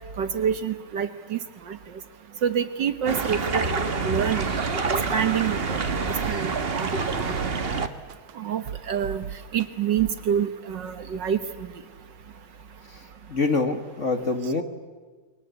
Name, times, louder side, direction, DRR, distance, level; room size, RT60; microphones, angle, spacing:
voice 1, 0.2-1.4 1.7-1.8 2.4-4.5 5.1-6.9 7.2-7.4 8.4-9.2 9.5-11.4, right 8 dB, 60° right, 10 dB, 1.7 m, -27 dB
sound 1, 3.1-7.9, right 4 dB, 30° right, 1.3 m, -27 dB
sound 2, 4.3-4.5 5.1-5.2 5.7-6.7 7.2-8.3 8.7-9.7 10.0-10.2, right 10 dB, 75° right, 1.8 m, -36 dB
voice 2, 12.9-14.6, left 3 dB, 35° left, 7 dB, 1.9 m, -26 dB
29.5 x 23.5 x 8.3 m, 1.4 s
omnidirectional pair, 2.4 m